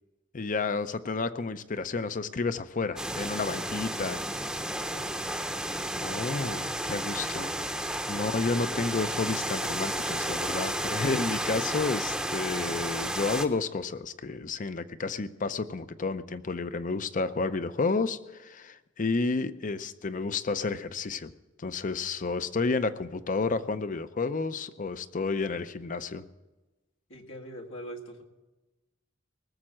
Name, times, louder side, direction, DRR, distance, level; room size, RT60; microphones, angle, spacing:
voice 1, 0.3-4.2 6.0-21.3 21.6-26.2, left 4 dB, 45° left, 13 dB, 0.6 m, -31 dB
sound 1, 3.0-13.5, right 1 dB, 5° right, 0.8 m, -32 dB
voice 2, 4.7-5.3 27.1-28.2, equal, 85° left, 0 dB, 1.9 m, -43 dB
19.0 x 7.3 x 7.6 m, 1.1 s
head